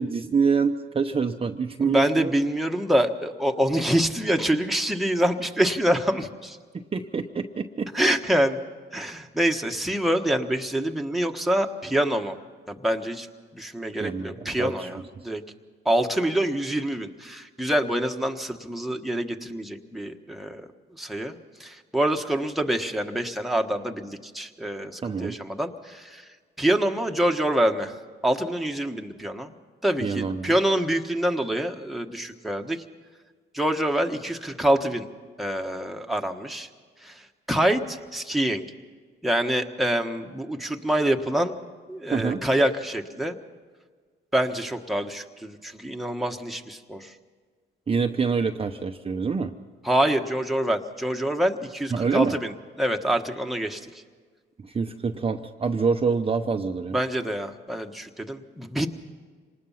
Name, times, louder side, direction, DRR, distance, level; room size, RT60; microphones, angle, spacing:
voice 1, 0.0-2.3 6.7-7.9 14.0-15.2 25.0-25.4 30.0-30.5 42.1-42.4 47.9-49.5 51.9-52.3 54.6-57.0, right 5 dB, 30° right, 4 dB, 0.8 m, -26 dB
voice 2, 1.8-6.6 7.9-8.6 8.9-12.4 12.7-13.3 13.5-15.4 15.8-20.6 20.9-26.3 26.6-27.9 28.2-29.5 29.8-32.8 33.5-35.1 35.4-36.7 37.0-38.6 39.2-41.6 41.9-43.4 44.3-47.1 49.8-52.5 52.8-53.8 56.9-58.9, right 1 dB, ahead, 3 dB, 1.4 m, -26 dB
26.0 x 19.5 x 5.7 m, 1.5 s
cardioid pair, 90°, 20 cm